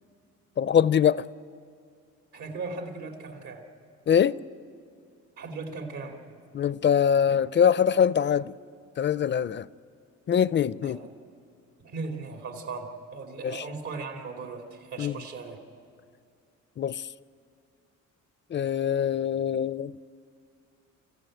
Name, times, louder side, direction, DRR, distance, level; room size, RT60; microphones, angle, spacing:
voice 1, 0.6-1.2 4.1-4.3 6.5-8.5 9.0-9.7 10.3-11.0 13.4-13.6 15.0-15.1 16.8-17.0 18.5-19.9, left 8 dB, 40° left, 0.4 m, -23 dB
voice 2, 2.3-3.6 5.4-6.4 10.8-11.1 11.8-15.6, right 4 dB, 75° right, 2.7 m, -38 dB
28.5 x 14.5 x 8.9 m
cardioid pair, 90°, 30 cm